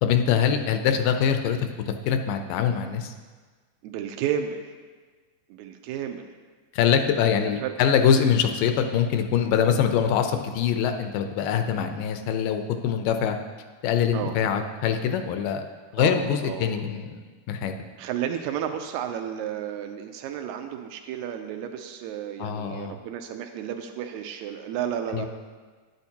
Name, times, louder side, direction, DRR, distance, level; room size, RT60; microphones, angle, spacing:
voice 1, 0.0-1.6 2.1-3.1 6.7-13.4 13.8-15.6 15.9-17.2 17.5-17.7 22.4-23.0 25.1-25.3, left 8 dB, 85° left, 7 dB, 2.2 m, -23 dB
voice 2, 3.8-4.7 5.5-6.3 7.3-7.7 14.1-14.3 16.0-16.8 18.0-25.3, right 9 dB, 85° right, 6 dB, 1.6 m, -32 dB
9.2 x 8.9 x 2.8 m, 1.4 s
omnidirectional pair, 3.8 m